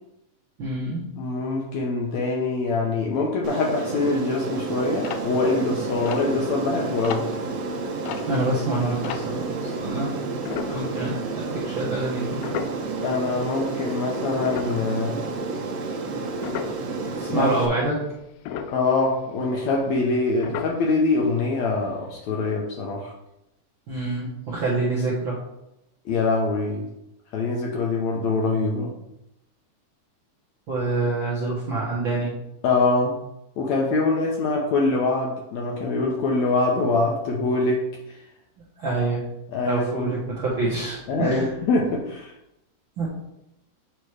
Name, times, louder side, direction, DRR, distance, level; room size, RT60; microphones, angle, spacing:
voice 1, 0.6-1.1 8.3-10.1 10.7-12.4 17.2-18.0 23.9-25.4 30.7-32.3 38.8-39.2 39.6-41.5 43.0-43.1, right 2 dB, 55° right, -7 dB, 1.4 m, -26 dB
voice 2, 1.2-7.3 13.0-15.2 17.3-17.5 18.7-23.1 26.1-26.9 27.3-28.9 32.6-33.2 33.6-37.9 39.5-40.1 41.1-42.3, left 3 dB, 70° left, -1 dB, 1.8 m, -24 dB
Aircraft, 3.4-17.7, right 4 dB, 75° right, 1.6 m, -30 dB
sound 1, 4.5-9.7 10.4-11.4 11.7-11.9 12.4-13.7 14.1-17.0 17.3-17.8 18.2-20.2 20.4-21.2 21.6-21.7 21.9-22.1 22.5-22.6, left 8 dB, 85° left, 2.3 m, -36 dB
8.9 x 3.0 x 4.8 m, 0.86 s
omnidirectional pair, 3.9 m